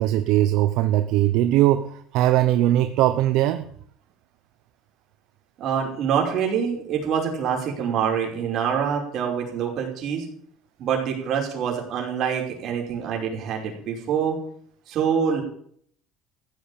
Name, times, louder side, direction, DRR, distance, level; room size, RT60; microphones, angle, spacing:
voice 1, 0.0-3.7, right 13 dB, 65° right, 10 dB, 0.9 m, -20 dB
voice 2, 5.6-10.3 10.8-14.4 14.9-15.4, right 7 dB, 45° right, 1 dB, 5.3 m, -25 dB
15.0 x 8.1 x 8.7 m, 0.63 s
cardioid pair, 145°, 0 cm